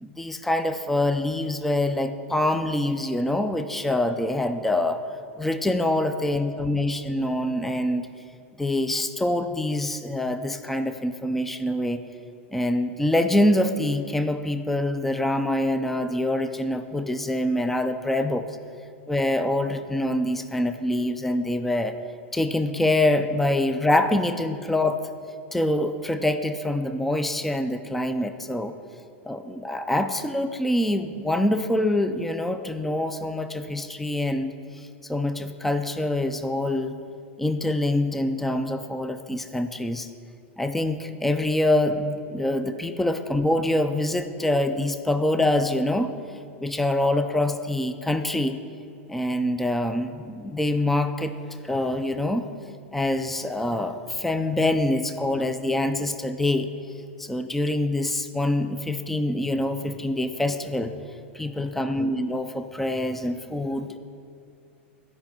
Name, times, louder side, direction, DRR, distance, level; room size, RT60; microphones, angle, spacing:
voice 1, 0.0-5.0 5.4-8.1 8.6-12.0 12.5-18.4 19.1-22.0 22.3-25.0 25.5-28.7 29.3-37.0 37.4-40.1 40.6-46.1 46.6-48.6 49.1-51.3 51.6-52.5 52.9-56.7 57.2-60.9 61.3-64.0, left 1 dB, 5° left, 9 dB, 0.4 m, -25 dB
11.0 x 5.3 x 4.4 m, 2.4 s
hypercardioid pair, 115°, 7 cm